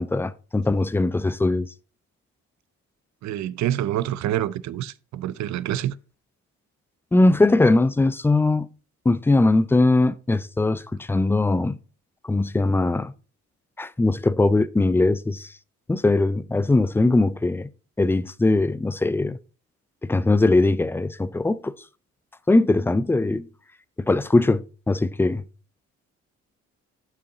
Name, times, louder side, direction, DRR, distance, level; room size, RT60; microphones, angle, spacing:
voice 1, 0.0-1.7 7.1-8.7 9.1-11.8 12.2-13.1 13.8-15.5 15.9-17.7 18.0-19.4 20.0-21.7 22.5-23.5 24.0-25.4, left 2 dB, 10° left, 0.3 m, -20 dB
voice 2, 3.2-5.9, right 12 dB, 65° right, 0.5 m, -27 dB
6.9 x 5.7 x 3.9 m
cardioid pair, 90°, 30 cm